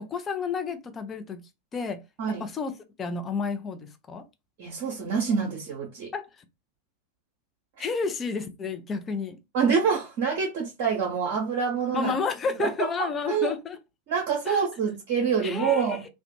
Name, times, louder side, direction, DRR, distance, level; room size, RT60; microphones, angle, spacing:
voice 1, 0.0-1.4 1.7-2.0 2.3-4.3 6.1-6.4 7.8-9.4 11.9-13.8 14.4-14.6 15.4-16.1, left 4 dB, 20° left, 0.5 m, -31 dB
voice 2, 4.6-6.1 9.5-12.1 12.6-13.5 14.1-16.0, right 6 dB, 45° right, 0.8 m, -26 dB
2.4 x 2.1 x 2.9 m
figure-of-eight pair, 90°, 0 cm